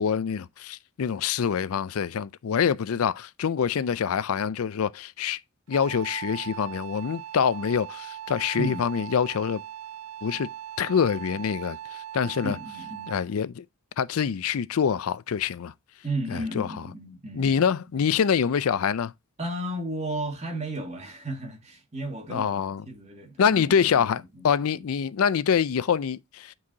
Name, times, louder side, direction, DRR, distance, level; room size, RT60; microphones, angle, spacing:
voice 1, 0.0-5.4 5.7-9.6 10.2-10.5 10.8-12.6 13.1-13.6 14.0-15.7 16.3-16.7 17.3-19.1 22.3-22.8 23.4-26.5, left 7 dB, 70° left, 0.4 m, -25 dB
Wind instrument woodwind instrument, 5.7-13.3, right 11 dB, 90° right, 0.4 m, -39 dB
voice 2, 12.4-13.1 16.0-17.6 19.4-24.1 24.3-24.4 24.7-24.8, right 1 dB, 30° right, 2.0 m, -34 dB
8.4 x 4.7 x 2.7 m
head